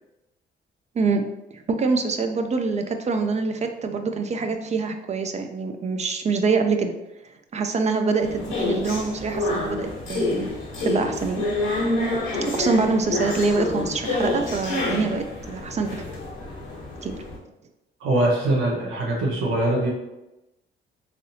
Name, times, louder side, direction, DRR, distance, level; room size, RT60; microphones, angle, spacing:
voice 1, 1.0-6.9 7.5-10.5 10.9-11.5 12.4-16.0 17.0-17.2, right 4 dB, 35° right, 6 dB, 0.4 m, -25 dB
sound 1, 8.2-17.4, left 2 dB, 85° left, 1.1 m, -28 dB
voice 2, 18.0-19.9, right 1 dB, 90° right, -2 dB, 0.7 m, -22 dB
3.3 x 2.7 x 2.6 m, 0.96 s
cardioid pair, 90°, 20 cm